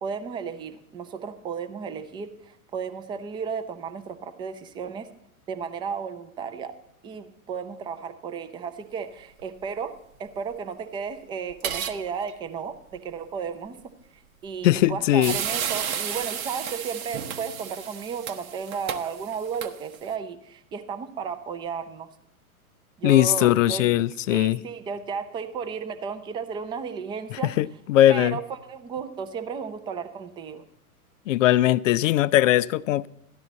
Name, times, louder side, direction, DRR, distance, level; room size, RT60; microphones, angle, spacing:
voice 1, 0.0-5.1 5.5-6.7 7.0-13.8 14.4-22.1 23.0-23.9 24.3-27.5 28.1-30.6, right 6 dB, 10° right, 0.4 m, -34 dB
sound 1, 11.5-12.0 12.3-12.4 14.7-14.8 15.2-20.1, right 8 dB, 65° right, 1.0 m, -32 dB
voice 2, 14.6-15.4 23.0-24.6 27.3-28.4 31.3-33.1, left 14 dB, 60° left, 0.5 m, -20 dB
13.5 x 10.5 x 4.0 m
hypercardioid pair, 110°, 44 cm